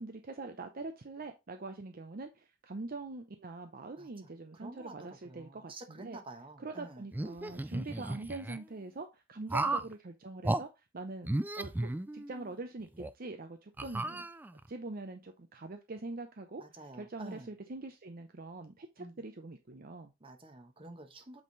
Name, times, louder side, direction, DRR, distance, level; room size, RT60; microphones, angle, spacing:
voice 1, 0.0-6.2 6.6-11.3 11.6-14.3 14.7-20.1, right 3 dB, 50° right, 0.7 m, -44 dB
voice 2, 4.5-7.0 9.4-9.8 16.6-17.5 19.0-19.2 20.2-21.4, right 2 dB, 30° right, 1.2 m, -49 dB
sound 1, 7.1-8.6 9.5-9.9 10.4-10.6 11.2-12.5 13.0-13.1 13.8-14.7, right 2 dB, 10° right, 0.3 m, -34 dB
7.9 x 3.7 x 4.0 m
head